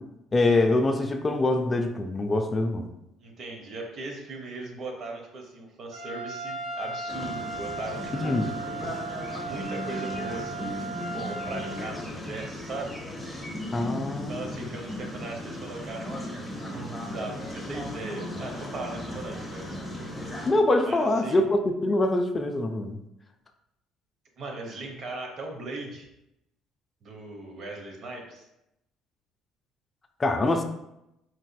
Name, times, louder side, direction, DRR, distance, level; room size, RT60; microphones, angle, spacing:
voice 1, 0.3-2.9 8.1-8.5 13.7-14.6 20.5-23.0 30.2-30.6, left 2 dB, 30° left, 6 dB, 0.3 m, -24 dB
voice 2, 3.2-8.5 9.4-10.9 11.1-13.0 14.3-19.7 20.8-21.4 24.4-26.1 27.0-28.5, right 2 dB, 55° right, 2 dB, 0.7 m, -38 dB
Trumpet, 5.9-12.0, right 3 dB, 85° right, 1.5 m, -36 dB
sound 1, 7.1-20.5, left 1 dB, 5° left, 0.8 m, -36 dB
4.0 x 2.4 x 2.2 m, 0.85 s
supercardioid pair, 85°, 0 cm